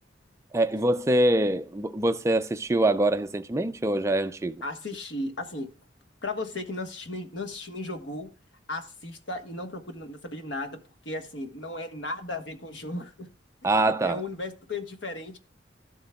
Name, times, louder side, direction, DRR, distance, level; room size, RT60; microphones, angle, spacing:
voice 1, 0.5-4.6 13.6-14.2, right 1 dB, 15° right, 0.4 m, -24 dB
voice 2, 4.6-5.7 6.2-8.3 8.7-13.3 14.0-15.4, left 2 dB, 70° left, 1.4 m, -35 dB
13.0 x 7.6 x 2.3 m
head